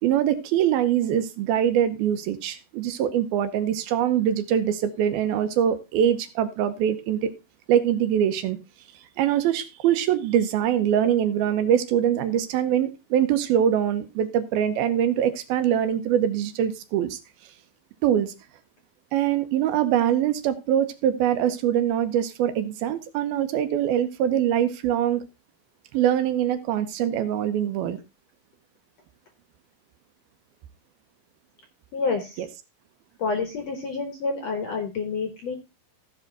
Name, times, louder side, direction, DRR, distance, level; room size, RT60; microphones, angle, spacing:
voice 1, 0.0-7.3 7.7-8.6 9.2-17.2 18.0-18.3 19.1-25.2 25.9-28.0 32.4-32.5, right 10 dB, 85° right, 2.7 m, -23 dB
voice 2, 31.9-32.4 33.2-35.5, left 4 dB, 65° left, 1.7 m, -28 dB
15.5 x 5.4 x 3.8 m
omnidirectional pair, 4.4 m